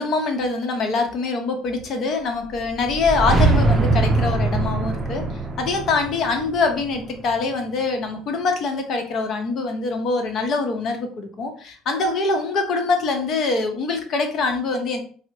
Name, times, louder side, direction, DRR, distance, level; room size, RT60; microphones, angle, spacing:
voice 1, 0.0-5.2 5.6-15.0, left 3 dB, 55° left, 5 dB, 0.8 m, -24 dB
sound 1, 2.5-7.7, right 3 dB, 30° right, 0.5 m, -22 dB
4.1 x 2.1 x 2.8 m, 0.43 s
supercardioid pair, 80°, 0 cm